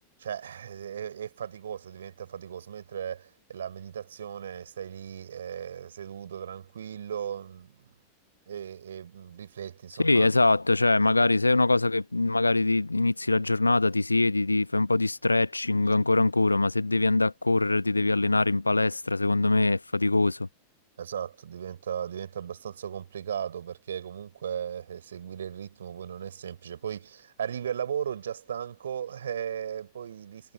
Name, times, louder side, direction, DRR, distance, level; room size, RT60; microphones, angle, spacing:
voice 1, 0.2-7.9 8.5-10.3 21.0-30.5, right 8 dB, 65° right, 5.7 m, -36 dB
voice 2, 10.0-20.5, left 2 dB, 80° left, 1.0 m, -23 dB
figure-of-eight pair, 90°, 0 cm